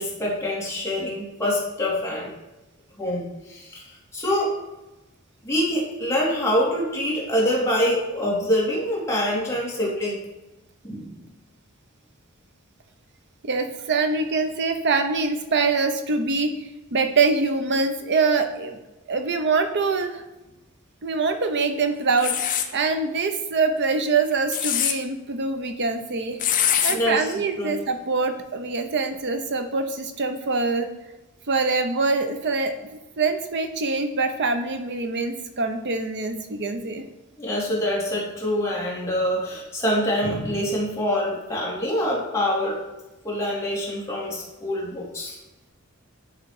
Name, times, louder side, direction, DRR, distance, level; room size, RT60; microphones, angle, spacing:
voice 1, 0.0-2.3 3.0-4.5 5.4-10.2 10.8-11.2 26.9-27.8 37.4-42.8 43.2-45.4, equal, 15° left, -6 dB, 2.3 m, -25 dB
voice 2, 13.4-18.8 19.1-20.2 21.0-26.4 26.8-30.9 31.5-32.7 33.2-37.0, right 4 dB, 55° right, 7 dB, 0.8 m, -24 dB
sound 1, 22.2-22.7 24.3-24.9 26.4-27.0, left 9 dB, 40° left, 0.5 m, -23 dB
9.7 x 3.3 x 4.8 m, 1.1 s
head